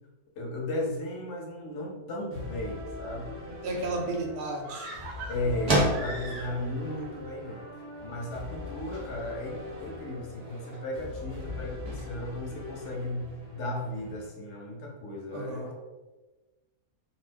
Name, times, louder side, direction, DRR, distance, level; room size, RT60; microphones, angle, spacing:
voice 1, 0.4-3.4 5.3-7.6 8.0-15.7, left 1 dB, 60° left, -1 dB, 0.8 m, -35 dB
sound 1, 2.3-14.3, left 3 dB, 15° left, 0.5 m, -42 dB
sound 2, 3.6-13.4, right 1 dB, 40° right, 0.5 m, -36 dB
voice 2, 3.6-4.9 15.3-15.8, right 2 dB, 65° right, 1 dB, 0.8 m, -33 dB
sound 3, 4.6-6.9 7.2-7.3, right 2 dB, 90° right, 1.1 m, -41 dB
2.7 x 2.1 x 3.3 m, 1.2 s
omnidirectional pair, 1.6 m